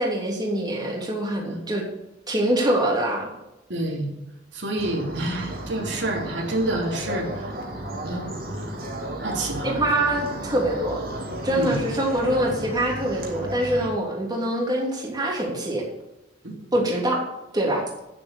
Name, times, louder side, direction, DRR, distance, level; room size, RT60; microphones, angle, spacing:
voice 1, 0.0-1.8 2.3-3.3 5.4-5.5 9.6-11.0 11.4-15.8 16.7-17.2 17.5-17.8, right 1 dB, 25° right, -2 dB, 2.9 m, -24 dB
voice 2, 3.7-4.1 4.5-7.5 8.0-8.4 9.2-9.7 11.6-11.8 16.4-16.5, right 1 dB, 75° right, 0 dB, 2.7 m, -28 dB
sound 1, 4.8-13.9, right 1 dB, 55° right, 2.6 m, -33 dB
9.5 x 7.5 x 7.0 m, 0.95 s
head